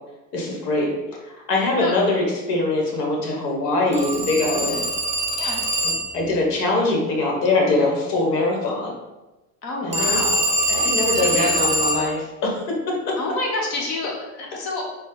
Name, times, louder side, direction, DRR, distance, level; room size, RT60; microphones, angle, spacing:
voice 1, 0.3-0.9 1.5-4.9 5.8-8.9 9.8-10.2 10.7-12.6 12.9-13.1, left 2 dB, 80° left, -1 dB, 1.2 m, -22 dB
Telephone, 3.9-6.2 9.9-12.1, equal, 15° right, 0.5 m, -23 dB
voice 2, 9.6-10.5 11.2-11.5 13.2-14.8, left 2 dB, 50° left, -1 dB, 1.3 m, -28 dB
4.2 x 2.3 x 3.8 m, 1.1 s
hypercardioid pair, 80°, 47 cm